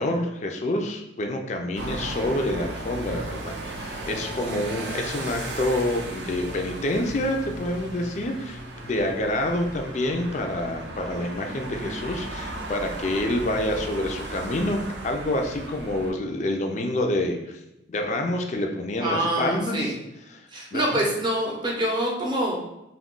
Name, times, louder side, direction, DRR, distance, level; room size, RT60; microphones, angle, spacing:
voice 1, 0.0-17.6 17.9-20.0 20.3-20.4 20.7-21.0, left 1 dB, 40° left, 3 dB, 0.3 m, -27 dB
sound 1, 1.8-16.1, right 2 dB, 70° right, 0.5 m, -36 dB
voice 2, 19.0-19.9 20.5-22.6, right 1 dB, 25° right, -2 dB, 0.6 m, -25 dB
2.3 x 2.1 x 3.6 m, 0.90 s
head